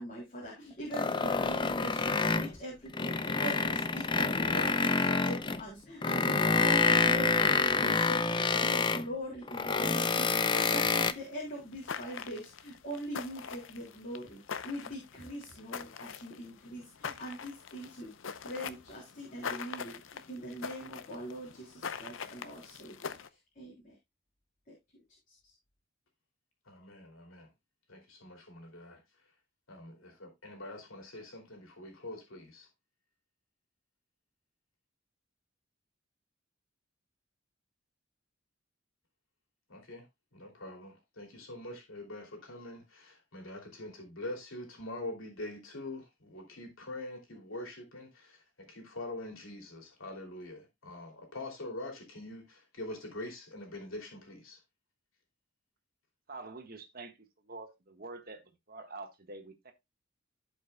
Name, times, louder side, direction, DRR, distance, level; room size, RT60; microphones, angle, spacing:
voice 1, 0.0-18.1 18.4-23.9 25.3-25.5, equal, 40° left, 3.4 m, -42 dB
sound 1, 0.9-2.6 2.9-5.6 6.0-9.1 9.5-11.1, left 4 dB, 25° left, 0.5 m, -27 dB
sound 2, 10.5-23.3, left 6 dB, 70° left, 0.6 m, -43 dB
voice 2, 26.7-27.5 27.9-29.0 29.7-32.7 39.7-40.0 40.3-54.6, left 1 dB, 90° left, 2.9 m, -44 dB
voice 3, 56.3-57.1 57.5-58.4 58.7-59.7, right 3 dB, 50° right, 1.4 m, -46 dB
15.5 x 5.3 x 2.2 m
head